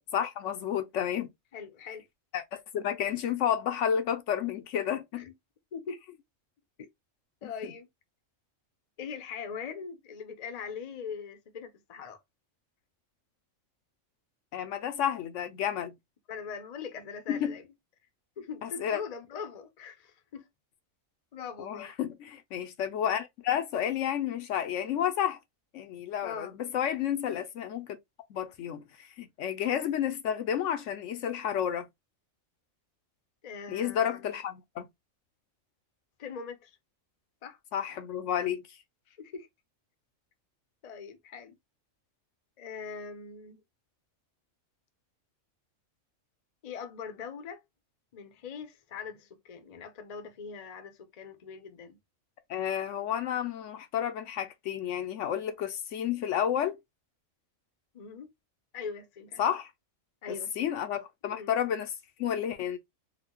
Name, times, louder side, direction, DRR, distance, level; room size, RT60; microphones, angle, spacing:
voice 1, 0.1-1.3 2.3-5.3 7.4-7.7 14.5-15.9 17.3-17.6 18.6-19.0 21.6-25.4 25.7-28.0 28.3-31.9 33.7-34.9 37.7-38.8 52.5-56.8 59.4-59.7 60.3-61.9 62.2-62.8, left 9 dB, 75° left, 0.9 m, -31 dB
voice 2, 1.5-2.0 5.1-5.3 5.7-6.0 7.4-7.9 9.0-12.2 16.3-17.6 18.4-20.5 21.3-21.9 26.2-26.6 33.4-34.2 36.2-36.8 37.4-37.6 39.1-39.5 40.8-41.6 42.6-43.6 46.6-47.6 48.1-52.0 57.9-58.3 58.7-59.4 60.2-60.7 61.3-61.5, left 6 dB, 40° left, 0.6 m, -41 dB
4.0 x 2.2 x 3.0 m
omnidirectional pair, 1.3 m